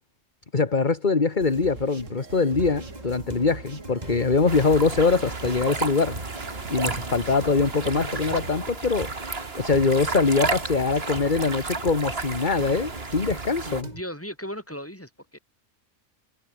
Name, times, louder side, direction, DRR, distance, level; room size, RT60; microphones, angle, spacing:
voice 1, 0.5-6.2 6.7-9.1 9.6-13.9, left 4 dB, 40° left, 1.9 m, -23 dB
sound 1, 1.4-8.5, right 4 dB, 80° right, 3.0 m, -42 dB
sound 2, 2.6-14.0, right 1 dB, 35° right, 4.8 m, -40 dB
sound 3, 4.5-13.8, right 3 dB, 50° right, 2.6 m, -33 dB
voice 2, 13.9-15.4, equal, 10° left, 6.5 m, -36 dB
omnidirectional pair, 1.3 m